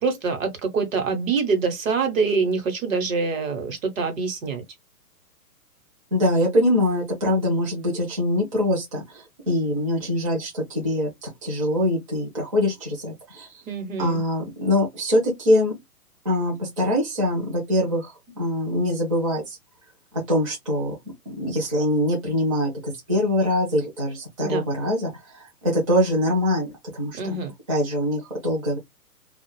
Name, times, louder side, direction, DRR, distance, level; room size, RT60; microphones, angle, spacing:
voice 1, 0.0-4.6 13.7-14.2 24.4-24.6 27.1-27.5, right 4 dB, 55° right, 1.1 m, -25 dB
voice 2, 6.1-13.6 14.0-15.8 16.2-19.6 20.3-20.9 21.3-27.2 27.7-28.8, left 1 dB, 20° right, 0.5 m, -23 dB
2.4 x 2.4 x 3.0 m
hypercardioid pair, 170°, 47 cm